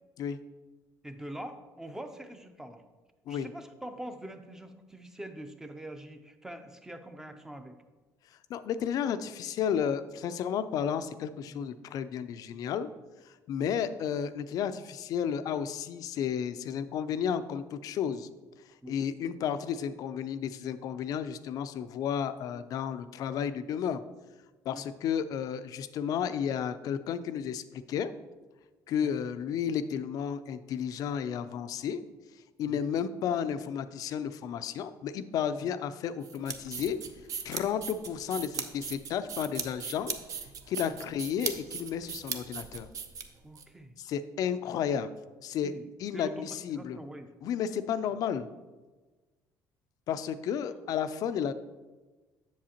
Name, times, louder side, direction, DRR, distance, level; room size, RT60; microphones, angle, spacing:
voice 1, 1.0-2.8 3.3-7.8 11.5-11.6 13.6-13.8 18.1-18.2 18.8-19.0 24.7-24.8 29.0-29.1 32.7-32.8 35.6-35.7 40.8-40.9 43.4-43.9 45.6-45.9 46.1-47.3 48.0-48.1, right 1 dB, 5° right, 7 dB, 0.5 m, -44 dB
voice 2, 8.5-12.9 13.3-18.3 18.9-24.0 24.7-28.1 28.9-32.0 32.6-37.0 37.4-40.2 40.7-42.9 44.0-45.1 45.4-45.7 46.0-47.0 47.4-48.5 50.1-51.5, left 8 dB, 55° left, 12 dB, 0.4 m, -32 dB
sound 1, 36.2-43.6, right 7 dB, 50° right, 0.6 m, -38 dB
7.5 x 7.2 x 2.9 m, 1.2 s
cardioid pair, 135°, 7 cm